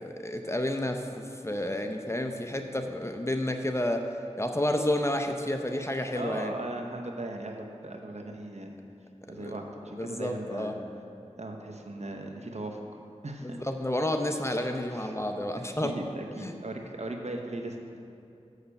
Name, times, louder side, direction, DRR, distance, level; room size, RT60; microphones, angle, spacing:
voice 1, 0.0-4.1 4.4-6.5 9.3-9.5 10.0-10.7 13.4-15.9 16.4-16.5, left 1 dB, 20° left, 5 dB, 0.7 m, -30 dB
voice 2, 6.1-8.7 9.3-10.7 11.4-12.8 13.2-13.6 14.9-15.1 15.6-18.0, right 2 dB, 65° right, 3 dB, 0.9 m, -38 dB
6.6 x 6.5 x 7.0 m, 2.6 s
wide cardioid pair, 45°, 12 cm